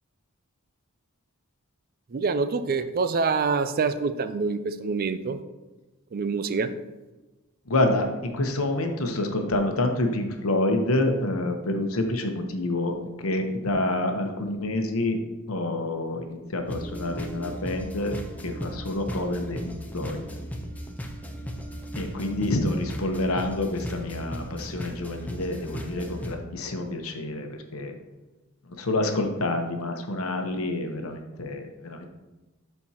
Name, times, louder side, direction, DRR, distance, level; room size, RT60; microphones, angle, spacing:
voice 1, 2.1-5.4 6.1-6.7 19.2-19.3, right 4 dB, 45° right, 11 dB, 0.4 m, -26 dB
voice 2, 7.7-15.2 15.5-18.2 18.4-20.2 22.0-27.5 27.7-27.9 28.8-32.1, left 2 dB, 70° left, 4 dB, 1.0 m, -27 dB
sound 1, 16.7-26.4, equal, 5° left, 0.6 m, -37 dB
12.0 x 4.5 x 2.9 m, 1.1 s
head